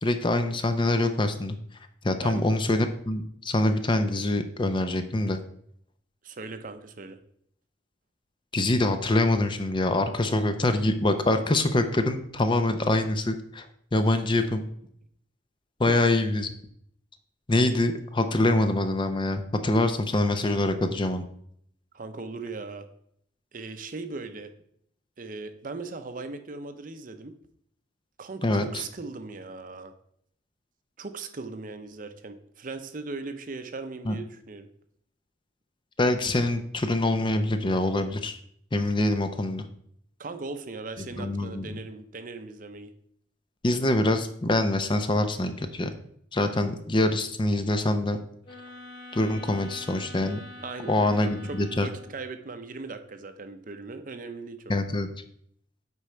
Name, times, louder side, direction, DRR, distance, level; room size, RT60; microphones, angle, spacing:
voice 1, 0.0-1.6 2.0-5.4 8.5-13.7 13.9-14.6 15.8-16.5 17.5-21.2 28.4-28.7 34.1-34.2 36.0-38.4 38.7-39.6 41.2-41.8 43.6-45.9 46.3-48.2 49.1-50.4 50.9-51.9 54.7-55.1, left 2 dB, 25° left, 8 dB, 0.6 m, -25 dB
voice 2, 6.2-7.2 15.9-16.0 21.9-22.9 23.5-24.5 25.2-27.3 28.2-29.9 31.0-34.7 40.2-42.9 50.6-54.7, right 3 dB, 50° right, 8 dB, 0.7 m, -38 dB
sound 1, 48.4-52.3, left 2 dB, 85° left, 2.8 m, -45 dB
8.2 x 5.0 x 4.4 m, 0.67 s
head